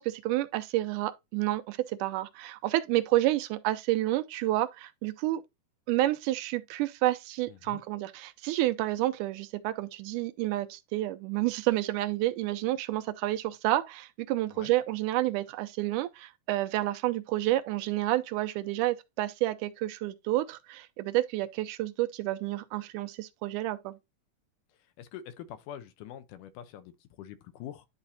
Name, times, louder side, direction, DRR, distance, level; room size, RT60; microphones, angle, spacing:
voice 1, 0.0-5.4 5.9-23.9, right 16 dB, 85° right, 2.1 m, -29 dB
voice 2, 7.5-7.8 14.5-14.7 25.0-27.9, left 10 dB, 90° left, 2.3 m, -45 dB
10.5 x 4.2 x 2.7 m
omnidirectional pair, 3.6 m